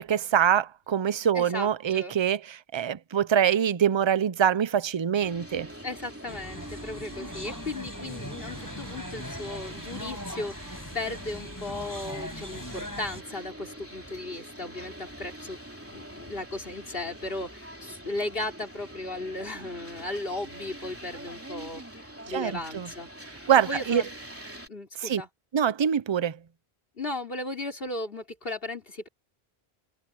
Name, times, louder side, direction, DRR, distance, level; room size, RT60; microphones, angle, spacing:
voice 1, 0.0-5.7 22.3-22.9 23.5-24.0 25.0-25.2 25.5-26.4, right 9 dB, 40° right, 0.4 m, -24 dB
voice 2, 1.3-2.2 5.8-15.6 15.9-24.1 24.7-25.3 27.0-29.1, left 2 dB, 60° left, 3.8 m, -36 dB
sound 1, 5.2-24.7, right 1 dB, 10° right, 3.0 m, -44 dB
sound 2, 6.3-13.2, equal, 15° left, 6.7 m, -40 dB
omnidirectional pair, 1.1 m